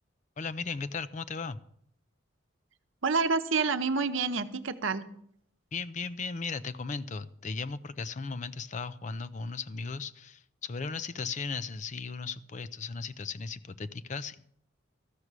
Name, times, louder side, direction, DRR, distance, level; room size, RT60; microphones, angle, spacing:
voice 1, 0.4-1.6 5.7-14.4, left 4 dB, 35° left, 14 dB, 0.4 m, -36 dB
voice 2, 3.0-5.0, right 4 dB, 75° right, 9 dB, 0.8 m, -28 dB
13.5 x 6.1 x 8.1 m, 0.68 s
head